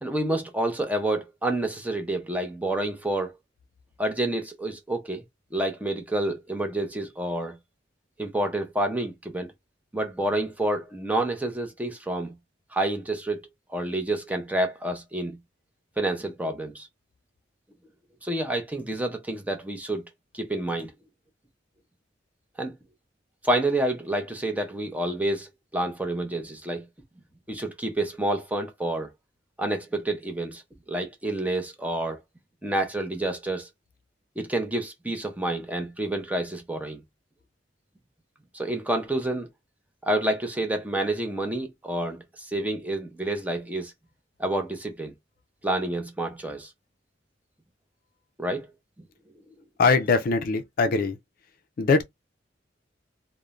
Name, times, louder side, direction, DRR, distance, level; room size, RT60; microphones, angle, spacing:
voice 1, 0.0-3.3 4.0-5.2 5.5-7.6 8.2-9.5 9.9-12.3 12.7-13.4 13.7-15.4 16.0-16.9 18.2-20.1 20.3-20.9 22.6-22.7 23.4-26.8 27.5-29.1 29.6-30.6 30.9-32.2 32.6-33.7 34.4-37.0 38.5-39.5 40.0-43.9 44.4-45.1 45.6-46.7 48.4-48.7, right 1 dB, 10° right, 0.6 m, -28 dB
voice 2, 49.8-51.2 51.8-52.0, left 4 dB, 50° left, 0.4 m, -22 dB
2.5 x 2.1 x 3.0 m
head